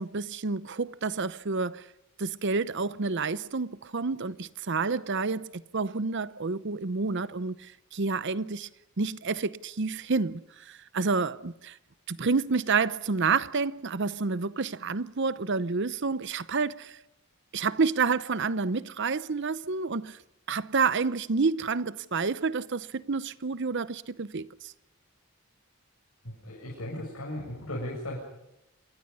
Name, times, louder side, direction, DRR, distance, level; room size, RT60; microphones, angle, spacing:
voice 1, 0.0-1.8 2.2-8.7 9.0-11.8 12.1-17.0 17.5-20.2 20.5-24.7, right 4 dB, 55° right, 0.7 m, -29 dB
voice 2, 26.2-28.2, left 1 dB, 75° left, 7.5 m, -36 dB
28.0 x 22.5 x 5.6 m
head